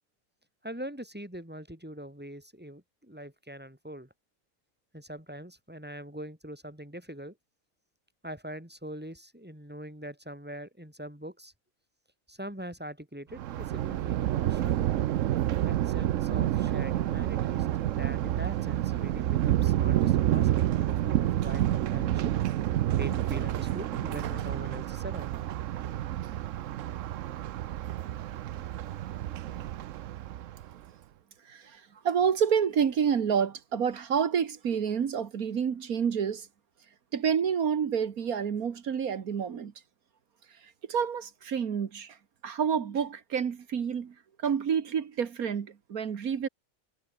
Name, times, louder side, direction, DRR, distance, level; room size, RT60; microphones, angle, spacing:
voice 1, 0.6-4.1 4.9-7.4 8.2-11.5 12.3-14.9 15.6-22.3 23.0-25.3, equal, 5° right, 5.0 m, -42 dB
Thunder, 13.3-30.7, right 12 dB, 65° right, 0.9 m, -29 dB
voice 2, 31.4-36.5 37.1-39.7 40.5-42.2 42.4-46.5, right 7 dB, 80° right, 1.9 m, -29 dB
omnidirectional pair, 1.5 m